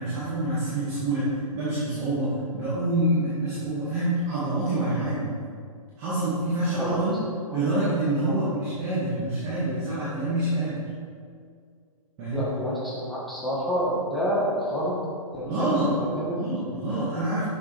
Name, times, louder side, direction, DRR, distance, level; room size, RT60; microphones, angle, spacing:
voice 1, 0.0-5.3 6.0-7.2 7.5-10.8 12.2-12.4 15.4-15.9 16.3-17.4, right 1 dB, 25° right, -11 dB, 2.1 m, -26 dB
voice 2, 12.3-15.0 15.3-16.4, equal, ahead, -8 dB, 1.5 m, -28 dB
11.5 x 6.8 x 3.5 m, 2.1 s
hypercardioid pair, 165°, 19 cm